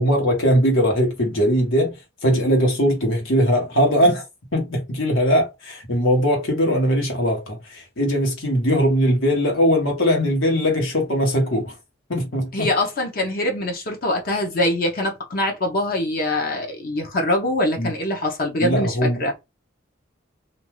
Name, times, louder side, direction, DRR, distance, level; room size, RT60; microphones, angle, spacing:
voice 1, 0.0-4.2 4.5-11.8 12.1-12.7 17.8-17.9 18.6-19.5, equal, 75° left, 1.2 m, -20 dB
voice 2, 12.5-19.3, left 1 dB, 45° left, 0.7 m, -23 dB
2.6 x 2.3 x 3.1 m
head